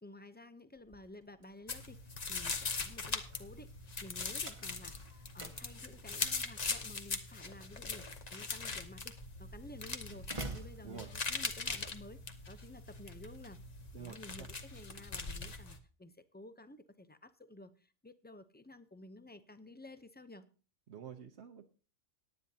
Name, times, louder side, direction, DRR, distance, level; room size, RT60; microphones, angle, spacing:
voice 1, 0.0-3.7 4.0-12.2 12.5-13.6 14.0-20.5, left 1 dB, 15° left, 11 dB, 0.4 m, -53 dB
Slam, 0.8-11.7, right 2 dB, 30° right, 1.1 m, -52 dB
sound 1, 1.7-15.8, left 4 dB, 35° left, 1.0 m, -41 dB
sound 2, 3.2-3.4 4.6-5.5 5.8-6.0 6.4-6.6 7.6-7.7 8.3-8.6 10.8-11.6, left 2 dB, 80° left, 4.9 m, -67 dB
voice 2, 13.9-14.5 20.9-21.6, right 7 dB, 65° right, 3 dB, 1.1 m, -48 dB
17.5 x 9.9 x 2.8 m, 0.36 s
omnidirectional pair, 1.2 m